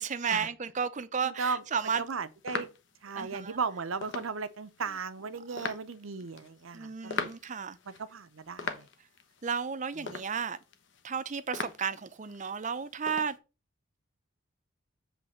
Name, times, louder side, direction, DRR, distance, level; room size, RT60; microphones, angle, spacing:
voice 1, 0.0-2.0 3.2-3.6 5.6-5.7 6.7-7.8 9.4-10.6 11.0-13.4, right 6 dB, 35° right, 0.5 m, -33 dB
voice 2, 1.2-1.6 2.0-2.7 3.0-7.3 7.9-8.9 10.0-10.2, right 5 dB, 75° right, 0.7 m, -36 dB
sound 1, 1.5-13.4, left 4 dB, 60° left, 1.0 m, -43 dB
7.9 x 3.3 x 6.3 m
head